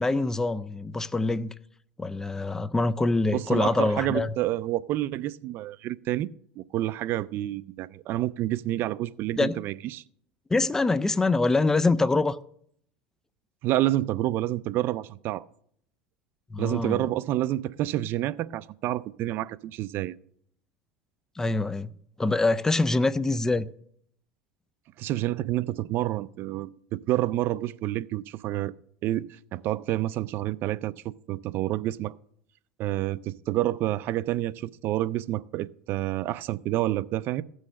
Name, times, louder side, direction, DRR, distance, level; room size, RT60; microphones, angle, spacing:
voice 1, 0.0-1.5 2.0-4.3 9.4-9.5 10.5-12.4 16.5-17.0 21.4-21.9 22.2-23.7, left 3 dB, 10° left, 0.4 m, -24 dB
voice 2, 3.3-6.3 6.6-10.0 13.6-15.4 16.6-20.1 25.0-28.7 29.0-32.1 32.8-37.4, right 14 dB, 50° right, 0.4 m, -28 dB
15.5 x 6.4 x 6.3 m
supercardioid pair, 125°, 5 cm